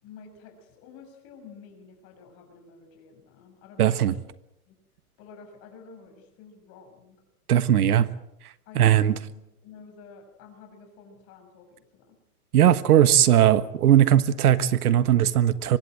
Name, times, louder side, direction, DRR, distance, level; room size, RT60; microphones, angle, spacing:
voice 1, 0.0-4.2 4.7-4.8 5.2-7.2 8.6-12.2, left 5 dB, 30° left, 5 dB, 6.5 m, -49 dB
voice 2, 3.8-4.1 7.5-8.1 8.7-9.1 12.5-15.8, right 11 dB, 75° right, 14 dB, 1.5 m, -19 dB
24.5 x 19.5 x 7.8 m, 0.83 s
hypercardioid pair, 155°, 45 cm